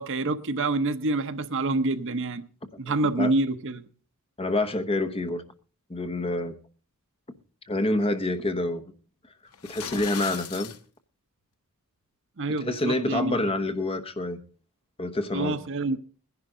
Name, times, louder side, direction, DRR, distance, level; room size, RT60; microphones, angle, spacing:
voice 1, 0.0-2.4 2.8-3.8 12.4-13.4 15.3-16.0, right 2 dB, 60° right, 0.8 m, -27 dB
voice 2, 2.9-3.3 4.4-5.4 5.9-6.5 7.7-8.8 9.6-10.7 12.6-14.4 15.0-15.6, left 2 dB, 25° left, 1.0 m, -27 dB
sound 1, 9.5-10.8, left 8 dB, 85° left, 1.0 m, -37 dB
20.0 x 11.0 x 3.7 m
head